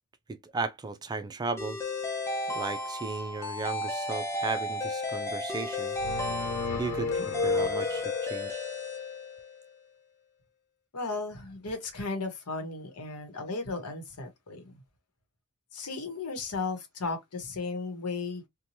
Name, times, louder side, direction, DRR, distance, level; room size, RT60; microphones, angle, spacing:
voice 1, 0.3-1.8 2.5-6.0 6.8-8.6, right 3 dB, 20° right, 0.3 m, -35 dB
sound 1, 1.6-9.7, left 2 dB, 10° left, 0.7 m, -34 dB
sound 2, 6.0-8.4, left 3 dB, 65° left, 0.3 m, -31 dB
voice 2, 6.8-7.3 10.9-14.8 15.7-18.4, left 3 dB, 90° left, 1.0 m, -35 dB
2.8 x 2.2 x 2.9 m
head